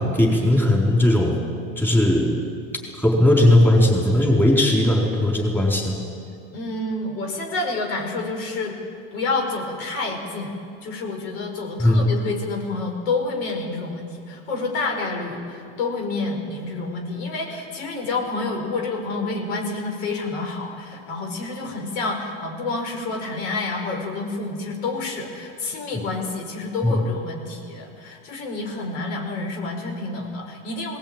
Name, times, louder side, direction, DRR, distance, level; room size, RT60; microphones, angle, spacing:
voice 1, 0.0-1.4 1.8-2.4 2.9-5.9 11.8-12.1 26.8-26.9, left 1 dB, 5° left, -2 dB, 4.4 m, -18 dB
voice 2, 6.5-8.8 9.1-10.6 10.8-31.0, left 3 dB, 80° left, 2 dB, 5.2 m, -28 dB
19.0 x 18.5 x 9.0 m, 2.3 s
supercardioid pair, 125°, 30 cm